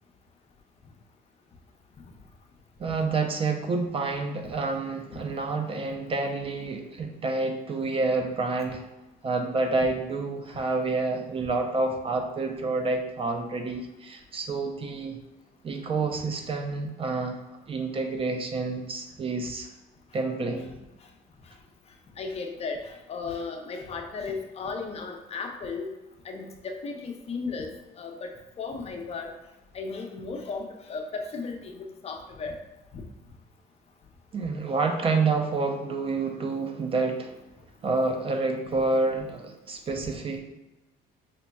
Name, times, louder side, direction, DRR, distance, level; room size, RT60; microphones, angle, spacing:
voice 1, 2.8-8.8 9.2-15.2 15.6-17.4 17.7-19.7 20.1-20.7 34.3-37.3 37.8-40.4, right 3 dB, 35° right, 4 dB, 0.4 m, -28 dB
voice 2, 22.2-25.9 26.2-27.7 28.0-28.3 28.6-29.3 29.7-32.6 32.9-33.0, left 4 dB, 40° left, 3 dB, 0.5 m, -35 dB
5.1 x 2.8 x 2.2 m, 0.99 s
cardioid pair, 110°, 17 cm